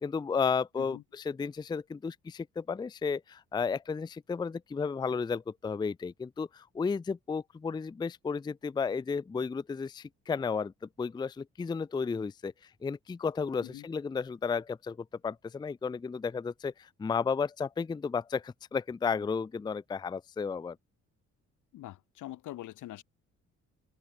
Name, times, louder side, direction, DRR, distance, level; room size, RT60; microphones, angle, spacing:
voice 1, 0.0-12.5 12.8-15.0 15.2-20.8, left 5 dB, 15° left, 0.4 m, -33 dB
voice 2, 21.7-23.0, left 15 dB, 80° left, 1.3 m, -44 dB
cardioid pair, 90°, 30 cm